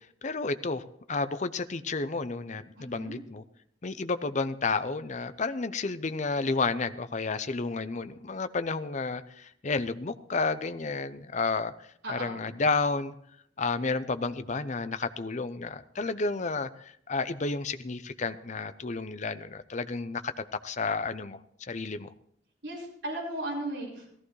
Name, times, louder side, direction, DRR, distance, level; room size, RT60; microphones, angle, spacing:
voice 1, 0.2-0.8 1.1-3.4 3.8-11.7 12.1-13.1 13.6-22.1, left 3 dB, 40° left, 11 dB, 0.6 m, -31 dB
voice 2, 2.7-3.1 12.0-12.5 22.6-24.1, right 1 dB, 60° right, -5 dB, 4.6 m, -36 dB
16.5 x 14.5 x 3.2 m, 0.68 s
head